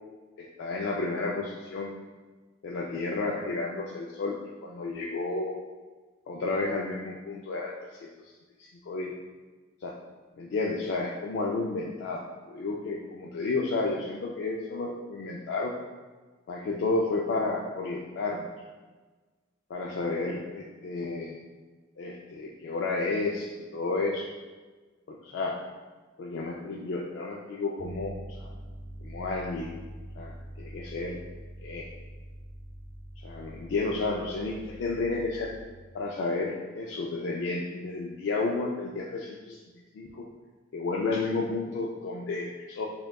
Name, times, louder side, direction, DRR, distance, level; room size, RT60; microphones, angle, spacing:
voice 1, 0.4-1.9 2.6-4.4 4.6-5.6 6.3-7.7 8.0-8.3 8.6-9.1 9.8-9.9 10.4-15.7 16.5-18.5 19.7-21.4 22.0-24.3 25.1-25.6 26.2-28.1 28.4-28.5 29.0-29.8 30.2-31.2 31.6-31.9 33.2-35.5 35.9-39.6 39.9-40.3 40.7-42.9, left 3 dB, 70° left, -2 dB, 0.3 m, -31 dB
sound 1, 27.8-35.6, right 1 dB, 40° right, 0.8 m, -44 dB
6.1 x 2.3 x 2.2 m, 1.3 s
head